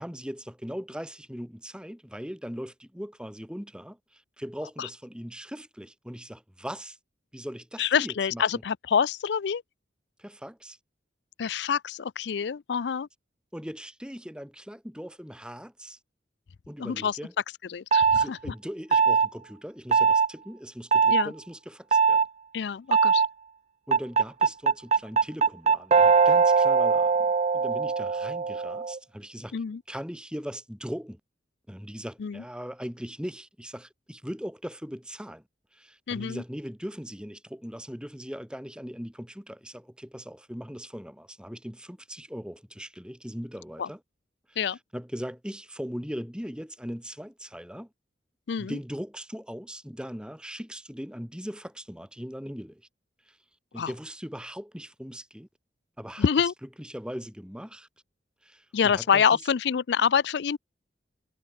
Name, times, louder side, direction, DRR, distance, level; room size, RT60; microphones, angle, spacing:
voice 1, 0.0-7.0 7.3-8.5 10.2-10.8 13.5-16.0 16.7-17.3 18.1-22.2 23.9-29.6 29.9-31.2 31.7-35.4 35.7-44.0 44.5-47.9 48.6-52.9 53.3-53.4 53.7-55.5 56.0-56.3 56.8-57.9 58.4-59.4, equal, 5° right, 4.1 m, -39 dB
voice 2, 7.8-9.6 11.4-13.1 16.8-17.2 17.7-18.5 21.1-21.3 22.5-23.2 29.5-29.8 32.2-32.4 36.1-36.4 43.8-43.9 44.6-44.8 48.5-48.8 53.8-53.9 56.2-56.5 58.7-60.6, left 7 dB, 65° left, 0.4 m, -26 dB
sound 1, 17.9-18.3 18.9-19.3 19.9-20.3 20.9-21.2 21.9-22.3 22.9-23.3 23.9-29.0, right 5 dB, 35° right, 0.4 m, -21 dB
head